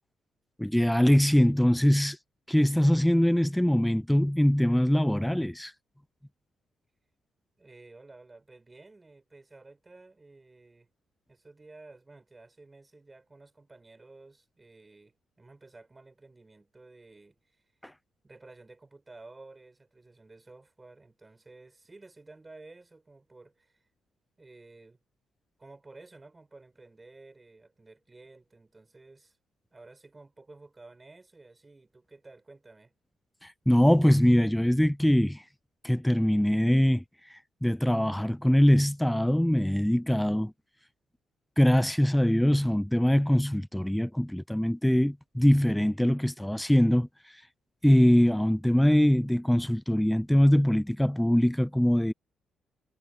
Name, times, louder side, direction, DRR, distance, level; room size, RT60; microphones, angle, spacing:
voice 1, 0.6-2.2 2.5-5.7 17.8-17.9 33.4-35.4 35.8-40.5 41.6-47.4 47.8-52.1, equal, 5° left, 0.4 m, -23 dB
voice 2, 7.6-10.9 11.3-17.6 18.2-23.8 24.4-25.0 25.6-29.4 29.7-32.9, right 3 dB, 20° right, 6.9 m, -53 dB
cardioid pair, 90°, 0 cm